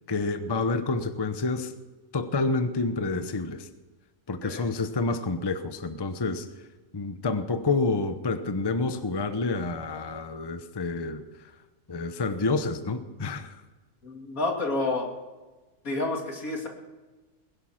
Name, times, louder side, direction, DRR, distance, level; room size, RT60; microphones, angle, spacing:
voice 1, 0.1-1.7 2.1-3.7 4.3-6.5 6.9-11.5 11.9-13.6, left 3 dB, 20° left, 9 dB, 0.8 m, -28 dB
voice 2, 14.0-15.1 15.8-16.7, left 2 dB, 80° left, 1 dB, 3.0 m, -29 dB
20.5 x 11.0 x 5.9 m, 1.2 s
omnidirectional pair, 1.5 m